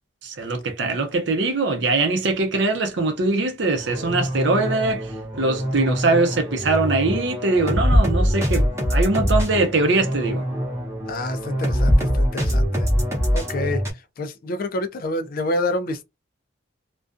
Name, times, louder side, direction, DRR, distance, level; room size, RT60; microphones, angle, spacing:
voice 1, 0.2-5.1 5.4-10.4, right 3 dB, 60° right, 0.7 m, -22 dB
sound 1, 3.7-13.9, equal, 15° right, 0.8 m, -23 dB
voice 2, 11.1-12.9 13.3-16.0, left 2 dB, 45° left, 0.4 m, -28 dB
2.4 x 2.2 x 2.4 m
head